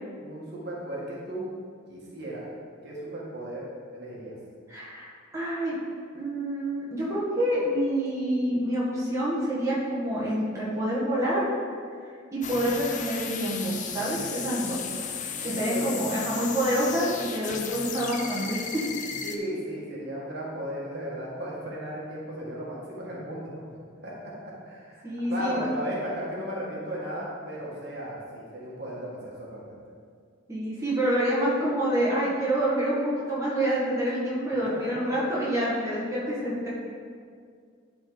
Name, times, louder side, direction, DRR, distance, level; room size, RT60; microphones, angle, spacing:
voice 1, 0.2-1.5 1.9-2.5 2.8-3.7 3.9-4.3 15.4-15.9 19.2-23.8 24.0-29.7 34.8-34.9, equal, 55° right, -5 dB, 1.6 m, -35 dB
voice 2, 4.7-5.8 6.1-11.5 12.0-14.8 15.4-18.8 25.0-25.6 30.5-36.7, right 1 dB, 15° right, -8 dB, 1.6 m, -27 dB
sound 1, 12.4-19.4, left 6 dB, 35° left, 0.5 m, -35 dB
11.5 x 4.1 x 3.9 m, 2.1 s
head